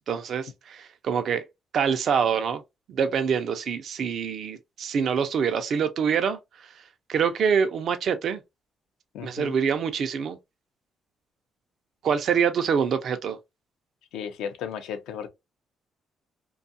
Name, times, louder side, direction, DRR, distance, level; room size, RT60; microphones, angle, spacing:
voice 1, 0.1-1.4 1.7-2.6 2.9-6.4 7.1-8.4 9.2-10.4 12.0-13.4, right 7 dB, 65° right, 0.4 m, -25 dB
voice 2, 9.1-9.5 14.1-15.3, left 8 dB, 90° left, 0.5 m, -34 dB
2.6 x 2.3 x 2.6 m
cardioid pair, 90°, 0 cm